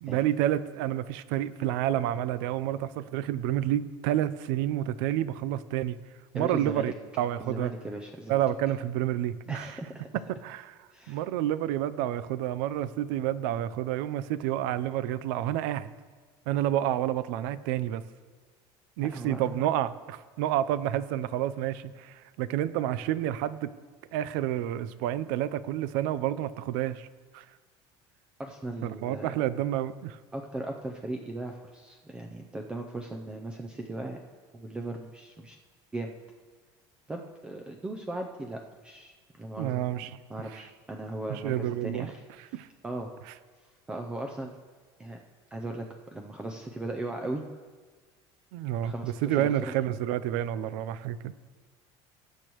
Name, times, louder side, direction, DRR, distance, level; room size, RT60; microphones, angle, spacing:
voice 1, 0.0-6.0 6.3-7.7 8.3-9.8 10.4-15.9 16.5-18.0 19.0-23.7 24.1-27.1 27.3-27.4 28.8-30.2 39.6-40.1 40.5-40.6 41.3-42.1 42.5-42.7 48.5-51.3, right 12 dB, 85° right, 15 dB, 0.5 m, -29 dB
voice 2, 6.3-6.9 7.4-8.4 9.5-10.1 10.9-11.2 19.1-19.6 28.4-29.3 30.3-34.2 34.5-35.6 35.9-36.1 37.1-40.0 40.3-42.2 42.5-43.1 43.9-44.5 45.0-45.2 45.5-45.9 46.1-47.4 48.8-49.7, right 2 dB, 10° right, 2 dB, 0.5 m, -37 dB
19.5 x 8.4 x 3.1 m, 1.5 s
cardioid pair, 175°, 11 cm